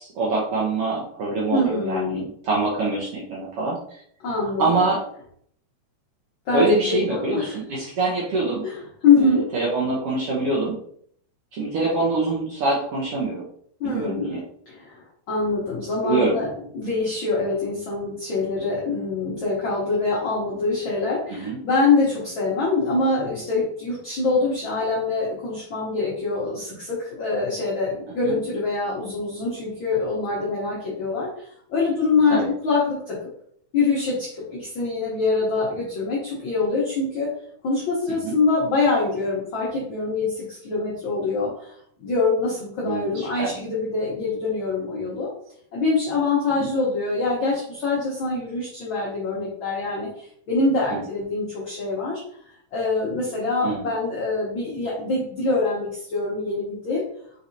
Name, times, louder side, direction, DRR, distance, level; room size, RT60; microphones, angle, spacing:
voice 1, 0.0-4.0 4.6-5.0 6.5-8.6 9.2-10.8 11.5-13.5 13.8-14.4 16.0-16.4 21.3-21.6 28.2-28.3 32.3-32.5 38.1-38.4 42.8-43.5 46.6-46.7 50.9-51.0 53.6-53.9, right 3 dB, 80° right, -4 dB, 1.3 m, -25 dB
voice 2, 1.5-2.3 4.2-4.8 6.5-7.6 8.6-8.8 9.0-9.5 13.8-14.4 14.7-33.2 33.7-37.3 37.6-41.7 42.0-45.3 45.7-52.2 52.7-57.1, left 3 dB, 85° left, -5 dB, 1.0 m, -24 dB
4.6 x 4.0 x 2.7 m, 0.64 s
omnidirectional pair, 3.7 m